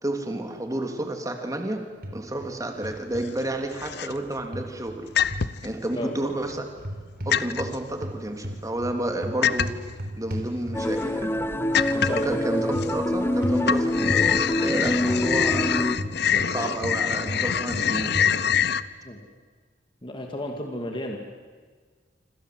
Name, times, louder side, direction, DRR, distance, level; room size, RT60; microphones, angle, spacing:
voice 1, 0.0-1.8 2.1-5.1 5.6-6.7 7.2-9.7 10.2-11.4 12.0-15.7 16.3-18.3, right 1 dB, 20° right, 4 dB, 3.2 m, -30 dB
sound 1, 2.0-2.5 2.8-3.3 4.5-5.5 6.8-7.7 8.0-11.0 12.0-12.2 12.7-13.0 13.4-13.6 14.1-14.3 15.1-16.5 16.8-18.7, equal, 55° right, 4.0 m, -34 dB
sound 2, 2.9-3.4 3.8-4.4 5.2-5.7 6.3-7.0 7.3-7.8 9.4-9.9 10.6-10.7 11.0-11.1 11.7-12.4 12.8-13.4 13.6-18.8, left 8 dB, 60° left, 0.8 m, -25 dB
sound 3, 10.7-16.0, left 1 dB, 15° left, 0.8 m, -26 dB
voice 2, 12.0-12.4 19.0-19.2 20.0-21.2, left 1 dB, 30° left, 2 dB, 2.4 m, -32 dB
27.0 x 26.0 x 7.9 m, 1.5 s
head